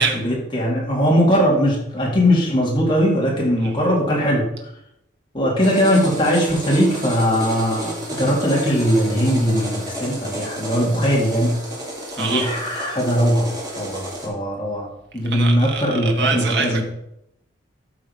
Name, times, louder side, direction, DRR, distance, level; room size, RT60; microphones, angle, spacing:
voice 1, 0.0-4.5 5.3-11.5 12.2-14.9 15.1-16.8, equal, 25° left, -4 dB, 3.8 m, -20 dB
sound 1, 5.6-14.3, right 1 dB, 20° right, 3.1 m, -31 dB
voice 2, 12.2-12.5 15.3-16.8, right 5 dB, 60° right, 2 dB, 1.7 m, -24 dB
13.5 x 6.2 x 5.3 m, 0.81 s
head